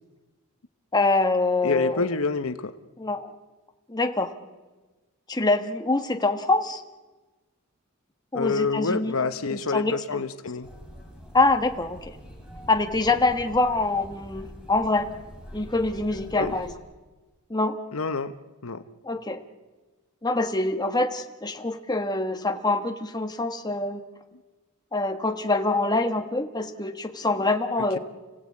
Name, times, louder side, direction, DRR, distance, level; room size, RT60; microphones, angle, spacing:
voice 1, 0.9-2.0 3.0-3.3 3.9-4.4 5.3-6.8 8.3-9.1 9.5-10.2 11.3-12.2 12.7-15.1 15.5-16.7 17.5-17.8 19.0-19.4 20.2-24.0 24.9-28.0, left 2 dB, 20° left, 6 dB, 1.3 m, -25 dB
voice 2, 1.6-2.8 8.3-10.7 16.4-16.6 17.9-18.3 18.6-18.8, left 4 dB, 75° left, 10 dB, 0.9 m, -27 dB
sound 1, 10.6-16.7, equal, 5° right, 4.5 m, -44 dB
30.0 x 17.0 x 8.5 m, 1.2 s
head